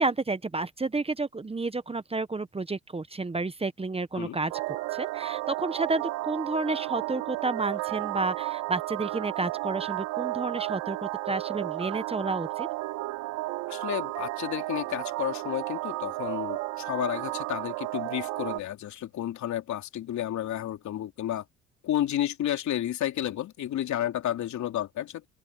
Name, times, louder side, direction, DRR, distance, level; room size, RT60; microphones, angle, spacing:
voice 1, 0.0-4.5 4.9-12.7, right 3 dB, 20° right, 1.2 m, -31 dB
sound 1, 4.5-18.6, right 20 dB, 85° right, 3.2 m, -33 dB
voice 2, 13.7-21.4 21.8-25.3, left 12 dB, 65° left, 3.5 m, -31 dB
open air
supercardioid pair, 70°, 31 cm